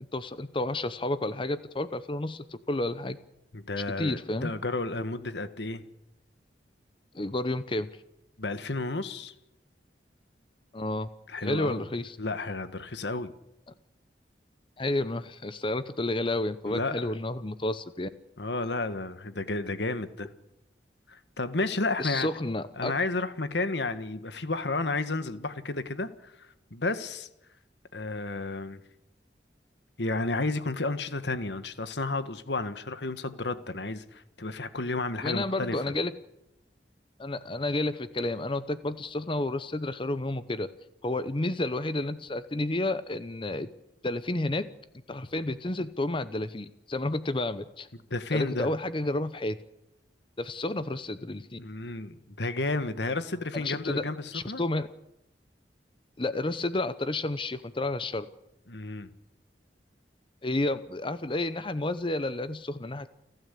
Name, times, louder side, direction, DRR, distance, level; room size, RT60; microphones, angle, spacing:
voice 1, 0.1-3.2 4.0-4.5 7.1-7.9 10.7-11.1 11.4-12.2 14.8-18.1 22.0-22.9 35.2-36.1 37.2-40.7 41.0-43.7 44.0-44.7 45.1-47.9 48.3-49.6 50.4-51.6 53.5-54.0 54.3-54.9 56.2-58.3 60.4-63.1, left 2 dB, 30° left, 13 dB, 0.8 m, -31 dB
voice 2, 3.5-5.8 8.4-9.3 11.3-11.9 12.2-13.3 16.6-17.1 18.4-20.3 21.1-22.3 22.8-27.3 27.9-28.8 30.0-35.8 48.1-48.7 51.6-54.6 58.7-59.1, left 2 dB, 75° left, 12 dB, 1.6 m, -32 dB
30.0 x 12.5 x 8.4 m, 0.86 s
head